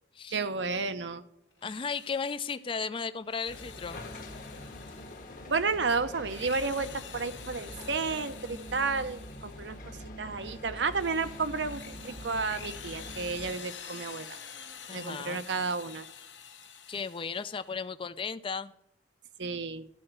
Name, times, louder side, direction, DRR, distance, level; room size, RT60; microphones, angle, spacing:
voice 1, 0.3-1.2 5.5-14.4 14.9-16.0 19.4-19.9, right 4 dB, 75° right, 11 dB, 0.8 m, -32 dB
Drill, 1.5-2.7 3.2-5.6 6.1-9.8 10.3-17.8, left 7 dB, 80° left, 1.2 m, -48 dB
voice 2, 1.6-4.0 14.9-15.4 16.9-18.7, left 5 dB, 30° left, 12 dB, 0.4 m, -35 dB
sound 1, 3.5-13.5, left 1 dB, 50° left, 1.3 m, -44 dB
12.5 x 4.4 x 7.8 m, 0.80 s
head